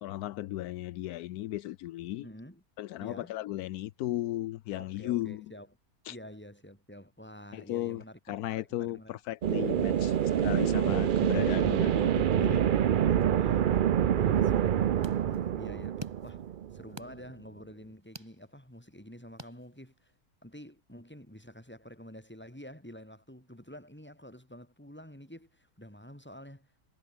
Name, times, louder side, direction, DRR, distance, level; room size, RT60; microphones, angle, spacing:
voice 1, 0.0-2.3 2.8-5.5 6.1-6.2 7.5-8.0 8.3-10.2 10.4-12.7 13.0-13.2, left 15 dB, 80° left, 1.1 m, -35 dB
voice 2, 2.2-2.6 3.0-3.3 4.7-5.7 6.1-9.2 10.1-10.5 11.3-12.0 12.2-12.7 13.2-13.7 14.0-16.5 16.7-20.1 20.4-26.7, equal, 5° left, 5.1 m, -49 dB
sound 1, 9.4-17.0, right 9 dB, 75° right, 0.4 m, -26 dB
sound 2, 14.5-20.2, right 1 dB, 15° right, 7.4 m, -51 dB
omnidirectional pair, 1.6 m